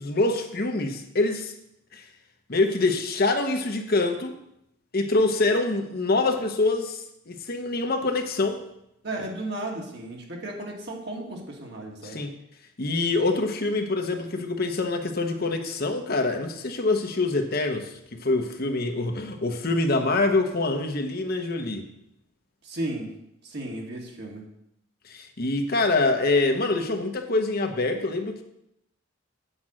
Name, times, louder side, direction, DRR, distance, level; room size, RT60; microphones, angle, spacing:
voice 1, 0.0-1.5 1.9-2.1 2.5-4.3 4.9-8.6 12.0-12.3 12.8-21.9 25.0-28.4, left 2 dB, 50° left, 5 dB, 0.9 m, -25 dB
voice 2, 9.0-12.2 22.6-23.1 23.4-24.4, right 1 dB, 55° right, -1 dB, 2.0 m, -34 dB
8.0 x 5.2 x 7.5 m, 0.80 s
head